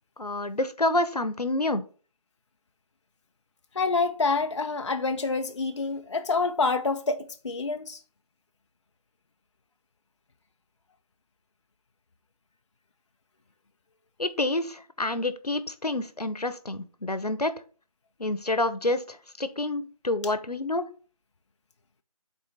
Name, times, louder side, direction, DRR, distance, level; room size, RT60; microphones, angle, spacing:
voice 1, 0.2-1.8 14.2-17.5 18.2-20.9, left 2 dB, 85° left, 0.9 m, -28 dB
voice 2, 3.7-8.0, left 4 dB, 50° left, 0.5 m, -27 dB
7.5 x 4.1 x 4.1 m
figure-of-eight pair, 155°, 20 cm